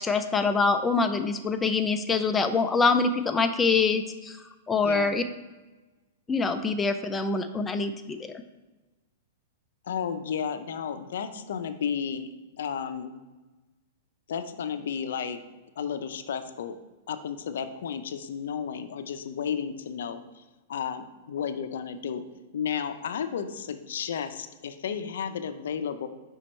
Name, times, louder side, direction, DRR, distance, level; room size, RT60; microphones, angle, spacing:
voice 1, 0.0-4.4 4.7-5.2 6.3-8.2, left 4 dB, 15° left, 7 dB, 0.3 m, -25 dB
voice 2, 4.8-5.1 9.8-13.2 14.3-15.4 15.8-16.8 17.1-20.4 20.7-22.2 22.5-26.1, left 7 dB, 75° left, 10 dB, 0.5 m, -33 dB
5.1 x 4.6 x 4.3 m, 1.2 s
hypercardioid pair, 140°, 0 cm